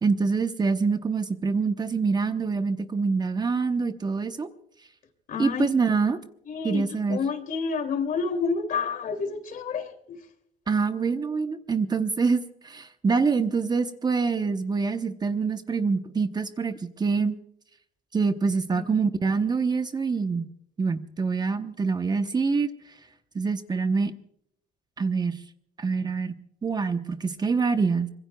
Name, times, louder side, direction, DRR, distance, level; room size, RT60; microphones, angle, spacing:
voice 1, 0.0-4.5 5.4-6.2 6.6-7.2 10.7-17.4 18.1-20.5 20.8-22.7 23.3-24.1 25.0-25.4 25.8-26.3 26.6-28.1, right 4 dB, 25° right, 9 dB, 0.9 m, -25 dB
voice 2, 5.3-5.7 6.5-10.2 18.7-18.8, left 5 dB, 55° left, 7 dB, 2.7 m, -29 dB
25.5 x 21.5 x 2.3 m, 0.72 s
cardioid pair, 110°, 17 cm